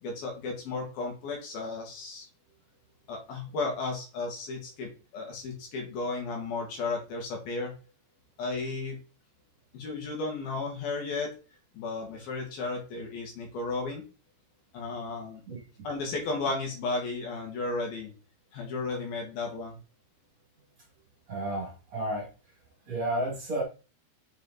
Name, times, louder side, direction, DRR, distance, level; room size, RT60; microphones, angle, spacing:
voice 1, 0.0-2.3 3.1-7.7 8.4-9.0 9.7-11.3 11.8-14.0 14.7-15.4 15.8-18.1 18.5-19.8, left 3 dB, 60° left, 1 dB, 3.6 m, -34 dB
voice 2, 21.3-22.3 22.9-23.6, right 1 dB, 45° right, -2 dB, 2.9 m, -31 dB
7.3 x 6.7 x 4.1 m, 0.34 s
omnidirectional pair, 5.0 m